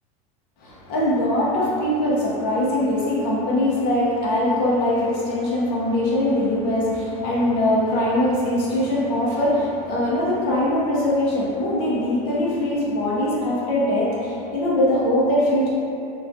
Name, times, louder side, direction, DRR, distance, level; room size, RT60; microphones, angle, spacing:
voice 1, 0.6-15.7, left 1 dB, 50° left, -6 dB, 0.5 m, -22 dB
2.3 x 2.2 x 2.5 m, 2.7 s
supercardioid pair, 135°, 20 cm